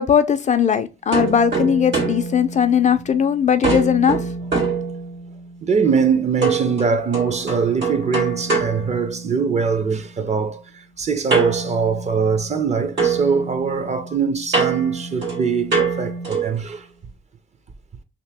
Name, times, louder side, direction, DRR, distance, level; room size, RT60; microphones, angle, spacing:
voice 1, 0.0-4.2, left 7 dB, 40° left, 0.4 m, -18 dB
sound 1, 1.1-3.2 3.6-5.5 6.4-9.6 11.3-12.7 13.0-16.6, right 4 dB, 70° right, 1.7 m, -25 dB
voice 2, 5.6-16.9, right 5 dB, 35° right, 0.6 m, -22 dB
2.9 x 2.8 x 3.3 m
cardioid pair, 90°, 20 cm